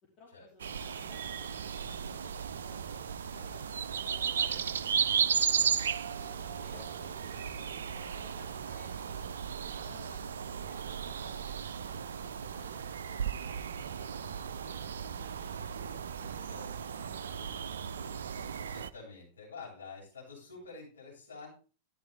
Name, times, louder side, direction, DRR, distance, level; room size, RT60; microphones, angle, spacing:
voice 1, 0.2-3.0 5.6-5.9 6.3-9.2 9.6-10.4 10.6-17.7, left 3 dB, 35° left, -1 dB, 2.7 m, -58 dB
sound 1, 0.6-18.9, right 7 dB, 65° right, 0.5 m, -35 dB
voice 2, 3.3-5.6 6.2-7.6 7.9-8.1 16.5-16.9 18.7-21.5, left 4 dB, 65° left, -4 dB, 7.9 m, -50 dB
13.0 x 10.5 x 3.5 m, 0.36 s
figure-of-eight pair, 90°, 0 cm